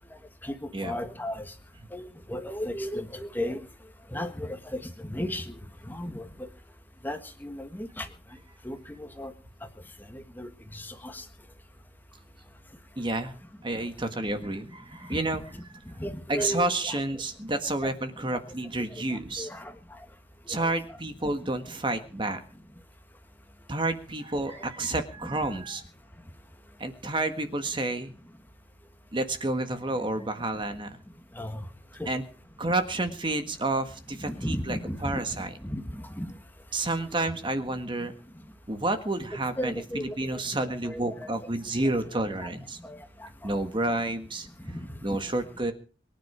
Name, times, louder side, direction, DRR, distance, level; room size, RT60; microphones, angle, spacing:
voice 1, 0.8-1.5 1.9-3.6 4.1-4.8 5.1-5.5 5.9-6.5 7.0-8.1 8.6-9.3 10.1-11.2 16.0-17.0 17.8-17.9 19.1-19.7 20.6-20.7 24.9-25.0 31.4-31.6 32.0-32.1 34.2-35.2 35.6-36.3 39.6-41.3 42.4-42.5 42.8-43.5, left 1 dB, 10° left, 7 dB, 1.5 m, -35 dB
voice 2, 13.0-13.3 13.6-15.5 16.3-19.5 20.5-22.4 23.7-25.8 26.8-28.1 29.1-31.0 32.1-32.2 32.6-35.6 36.7-38.1 38.7-42.8 43.4-44.5 45.0-45.7, right 2 dB, 25° right, 8 dB, 1.6 m, -30 dB
23.5 x 10.0 x 5.0 m, 0.38 s
head